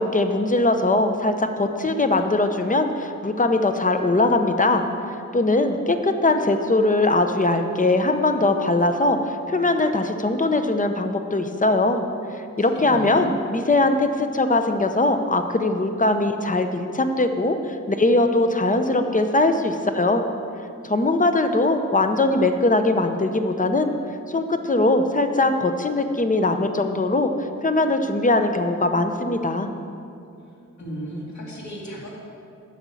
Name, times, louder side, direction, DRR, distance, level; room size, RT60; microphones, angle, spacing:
voice 1, 0.0-4.8 5.3-12.0 12.6-20.2 20.8-23.9 24.3-27.3 27.6-29.7, left 2 dB, 25° left, 7 dB, 0.7 m, -21 dB
voice 2, 12.6-13.3 30.8-32.2, right 1 dB, 65° left, -4 dB, 2.2 m, -35 dB
9.1 x 6.1 x 8.4 m, 2.5 s
wide cardioid pair, 105°, 30 cm